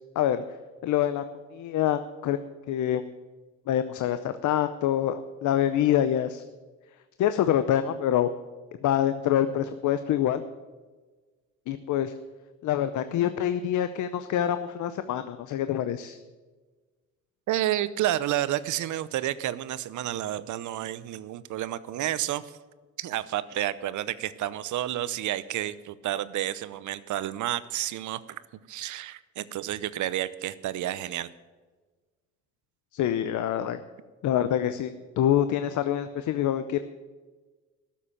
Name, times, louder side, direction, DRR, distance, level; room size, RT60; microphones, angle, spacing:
voice 1, 0.8-1.2 1.5-2.4 2.7-3.0 3.7-6.4 7.2-8.3 8.8-10.4 11.7-12.1 12.6-16.2 32.9-33.8 34.2-34.9 35.2-36.8, left 11 dB, 75° left, 11 dB, 0.7 m, -26 dB
voice 2, 17.5-22.5 23.0-28.4 28.7-31.3, right 13 dB, 75° right, 16 dB, 0.7 m, -30 dB
12.5 x 7.4 x 8.8 m, 1.3 s
cardioid pair, 90°, 30 cm